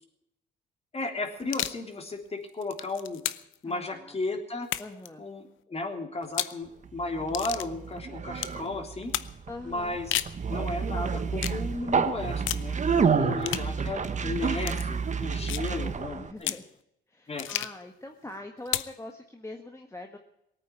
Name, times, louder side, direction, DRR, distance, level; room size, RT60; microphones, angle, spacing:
voice 1, 0.9-3.2 3.6-4.7 5.2-9.1 9.6-10.1 10.5-16.5 17.3-17.5, left 2 dB, 30° left, 3 dB, 3.4 m, -34 dB
sound 1, 1.4-1.8 2.5-3.6 4.6-5.1 6.2-6.6 7.3-7.7 8.4-8.6 9.1-9.3 9.9-10.4 11.4-11.6 12.5-12.7 13.4-13.7 14.6-14.8 15.5-15.7 16.4-16.7 17.4-17.8 18.6-19.0, left 13 dB, 75° left, 0.7 m, -32 dB
voice 2, 3.6-4.2 4.8-5.2 9.5-10.0 13.0-13.3 15.4-16.7 17.1-20.2, left 2 dB, 15° left, 3 dB, 1.5 m, -43 dB
Conversation, 6.8-16.3, right 6 dB, 40° right, 1.3 m, -29 dB
19.0 x 9.0 x 8.3 m, 0.80 s
cardioid pair, 90°, 20 cm